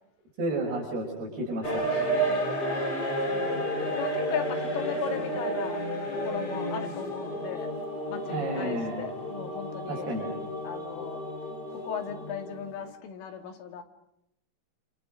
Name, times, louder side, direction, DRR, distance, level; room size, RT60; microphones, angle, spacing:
voice 1, 0.4-1.9 8.3-9.0 9.9-10.3, right 1 dB, 55° right, 0 dB, 7.7 m, -31 dB
sound 1, 1.6-12.9, right 1 dB, 20° left, 4.0 m, -31 dB
voice 2, 1.9-5.8 6.1-7.7 8.1-10.1 10.6-11.2 11.7-13.8, left 8 dB, 85° left, 5 dB, 4.9 m, -38 dB
29.0 x 27.5 x 6.4 m, 0.81 s
omnidirectional pair, 5.5 m